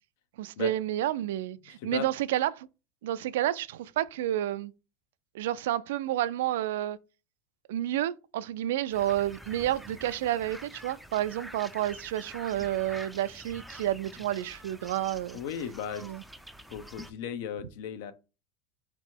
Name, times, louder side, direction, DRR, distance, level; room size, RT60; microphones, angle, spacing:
voice 1, 0.4-2.7 3.0-4.7 5.3-7.0 7.7-15.4 16.0-16.2, right 13 dB, 85° right, 0.3 m, -30 dB
voice 2, 1.6-2.1 15.3-16.1 16.7-18.1, left 8 dB, 70° left, 0.6 m, -36 dB
sound 1, 8.9-17.1, equal, ahead, 0.4 m, -47 dB
3.6 x 3.0 x 4.4 m
supercardioid pair, 140°, 0 cm